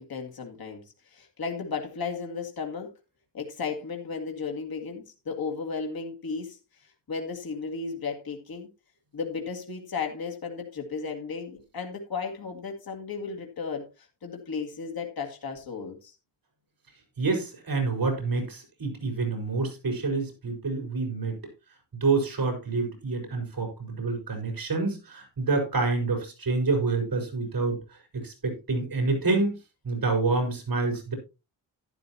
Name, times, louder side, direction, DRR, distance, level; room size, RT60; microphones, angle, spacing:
voice 1, 0.0-2.9 3.3-8.7 9.1-16.2, left 5 dB, 60° left, 2 dB, 2.3 m, -35 dB
voice 2, 17.2-21.4 21.9-29.6 29.8-31.1, right 3 dB, 55° right, 4 dB, 4.9 m, -27 dB
12.0 x 11.0 x 2.9 m, 0.27 s
wide cardioid pair, 120°, 41 cm